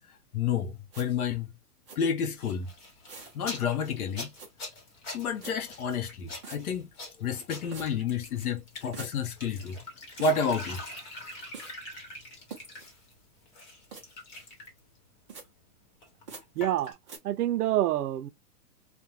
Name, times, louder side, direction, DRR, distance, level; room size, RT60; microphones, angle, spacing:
voice 1, 0.1-1.5 2.0-2.7 3.3-4.3 5.1-6.9 7.2-9.8 10.2-10.8, left 5 dB, 75° left, 0.8 m, -30 dB
sound 1, 0.9-1.1 1.9-2.0 3.1-3.4 4.4-4.5 5.4-5.5 6.4-6.6 7.7-7.9 8.9-9.1 10.2-10.4 11.5-11.7 12.5-12.8 13.9-14.0 15.3-15.4 16.3-16.4 17.1-17.2, right 5 dB, 20° right, 0.6 m, -43 dB
sound 2, 2.4-13.1 13.4-14.8 16.0-16.9, left 2 dB, 30° left, 1.0 m, -44 dB
voice 2, 16.6-17.0 17.2-18.3, right 13 dB, 85° right, 0.6 m, -27 dB
2.5 x 2.2 x 2.8 m
hypercardioid pair, 170°, 45 cm